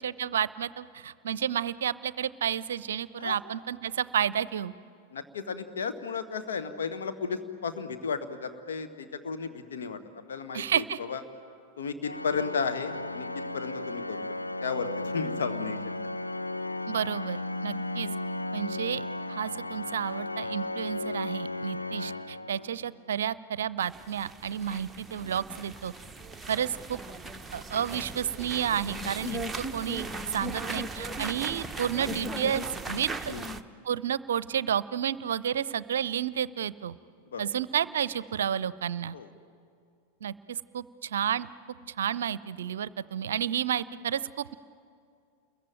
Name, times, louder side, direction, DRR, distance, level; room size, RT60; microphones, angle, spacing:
voice 1, 0.0-4.7 10.5-11.0 16.9-18.1 18.5-19.0 19.3-25.9 26.5-27.0 27.5-33.3 33.8-37.0 37.4-39.2 40.2-41.5 42.0-44.5, right 9 dB, 65° right, 19 dB, 0.6 m, -31 dB
voice 2, 5.1-11.2 11.8-13.3 13.5-14.2 14.6-15.8 33.2-33.4 37.3-37.5 39.1-39.3, left 5 dB, 65° left, 9 dB, 1.7 m, -34 dB
Organ, 12.0-23.0, left 2 dB, 85° left, 0.8 m, -35 dB
sound 1, 23.8-33.6, right 2 dB, 10° right, 1.0 m, -38 dB
29.5 x 22.0 x 9.0 m, 2.4 s
figure-of-eight pair, 90°, 0 cm